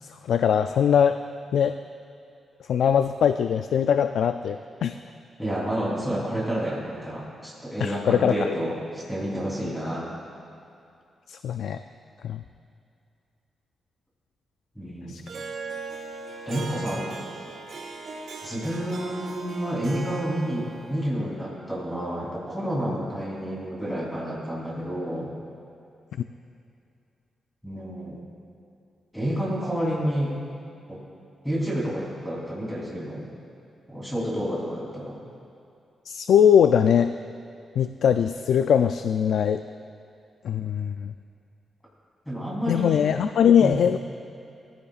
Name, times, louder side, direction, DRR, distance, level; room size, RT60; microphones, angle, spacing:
voice 1, 0.0-1.2 1.5-1.8 2.7-5.0 7.8-8.4 11.3-11.8 12.2-12.4 15.1-15.2 36.1-37.2 37.8-39.6 40.4-41.1 42.7-44.0, left 8 dB, 75° left, 9 dB, 0.3 m, -21 dB
voice 2, 5.4-10.1 14.7-15.2 16.4-17.1 18.4-25.3 27.6-28.2 29.1-30.3 30.9-31.0 31.4-33.3 33.9-35.2 42.2-43.0 43.6-43.8, equal, ahead, -6 dB, 3.4 m, -29 dB
Harp, 15.3-21.1, right 4 dB, 70° right, 1.7 m, -38 dB
20.0 x 15.0 x 2.4 m, 2.5 s
wide cardioid pair, 165°, 0 cm